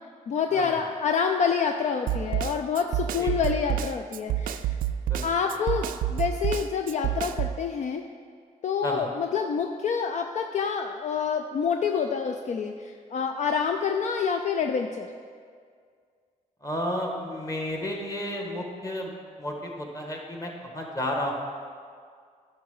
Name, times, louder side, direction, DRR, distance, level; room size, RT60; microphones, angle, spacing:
voice 1, 0.3-4.7 5.2-8.0 8.6-15.1, left 6 dB, 60° left, 5 dB, 0.5 m, -27 dB
Snare drum, 2.1-7.6, right 11 dB, 90° right, 0.4 m, -28 dB
voice 2, 16.6-21.3, left 1 dB, 25° left, 1 dB, 1.6 m, -32 dB
10.5 x 5.7 x 5.5 m, 2.1 s
cardioid pair, 105°, 14 cm